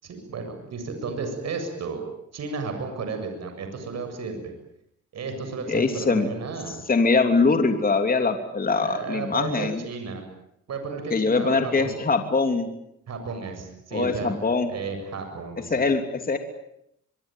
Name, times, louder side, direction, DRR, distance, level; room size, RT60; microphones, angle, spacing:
voice 1, 0.0-2.1 2.3-4.5 5.1-6.8 8.7-10.3 10.7-12.0 13.1-14.3 14.7-15.9, right 4 dB, 60° right, 6 dB, 7.4 m, -33 dB
voice 2, 5.7-6.3 6.9-9.8 11.1-12.7 13.9-14.7 15.7-16.4, left 4 dB, 30° left, 6 dB, 3.1 m, -22 dB
24.5 x 23.5 x 9.3 m, 0.77 s
cardioid pair, 90°, 30 cm